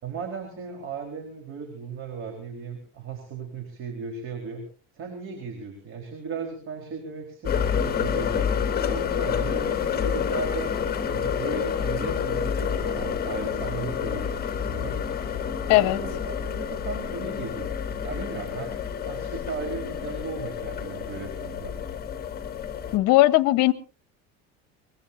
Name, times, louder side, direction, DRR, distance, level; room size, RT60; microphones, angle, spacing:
voice 1, 0.0-4.6 4.9-8.5 8.9-10.7 11.1-15.0 15.6-21.7, right 5 dB, 45° right, 4.3 m, -36 dB
sound 1, 7.4-23.0, left 7 dB, 30° left, 3.0 m, -29 dB
voice 2, 22.9-23.7, left 18 dB, 60° left, 1.2 m, -18 dB
23.0 x 21.5 x 2.7 m
cardioid pair, 130°, 30 cm